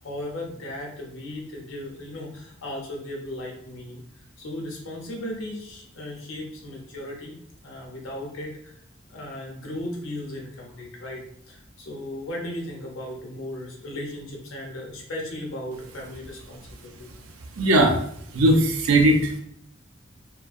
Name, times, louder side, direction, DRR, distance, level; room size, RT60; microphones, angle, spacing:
voice 1, 0.0-7.4 7.6-8.7 9.1-17.1, left 1 dB, 80° left, -1 dB, 0.7 m, -36 dB
voice 2, 17.5-19.4, right 1 dB, 90° right, 4 dB, 0.4 m, -20 dB
2.4 x 2.1 x 2.5 m, 0.68 s
head